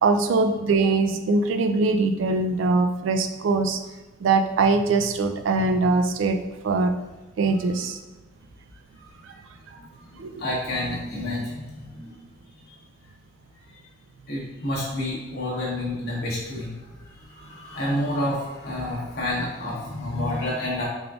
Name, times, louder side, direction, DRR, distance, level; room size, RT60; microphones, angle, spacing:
voice 1, 0.0-3.8 4.2-6.4 6.6-6.9 7.4-8.0 10.2-10.4, right 3 dB, 75° right, 7 dB, 0.3 m, -22 dB
voice 2, 10.4-12.1 14.3-16.7 17.3-20.9, left 1 dB, 55° left, -6 dB, 0.9 m, -29 dB
3.7 x 3.5 x 2.3 m, 1.1 s
head